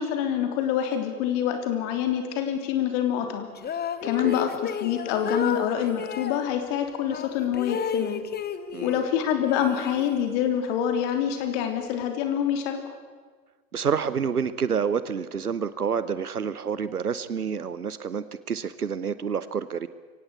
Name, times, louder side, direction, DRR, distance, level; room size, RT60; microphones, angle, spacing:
voice 1, 0.0-3.5 4.0-8.2 8.8-12.8, left 9 dB, 50° left, 6 dB, 3.3 m, -26 dB
sound 1, 3.6-6.4 7.1-9.1 9.4-10.5, left 7 dB, 20° left, 1.2 m, -33 dB
voice 2, 8.7-9.0 13.7-19.9, right 6 dB, 85° right, 15 dB, 0.8 m, -28 dB
23.5 x 17.5 x 8.3 m, 1.5 s
figure-of-eight pair, 75°, 44 cm